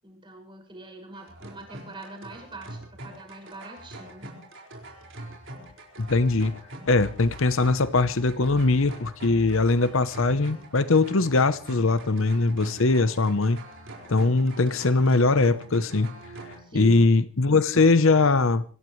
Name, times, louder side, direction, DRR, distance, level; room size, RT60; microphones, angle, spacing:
voice 1, 0.0-4.3 16.6-17.1, right 1 dB, 20° right, 6.1 m, -43 dB
sound 1, 1.1-16.6, right 1 dB, 55° right, 5.2 m, -43 dB
voice 2, 6.0-6.6 6.9-13.6 14.1-16.1 16.7-18.6, left 3 dB, 60° left, 0.8 m, -21 dB
25.5 x 17.5 x 3.2 m
head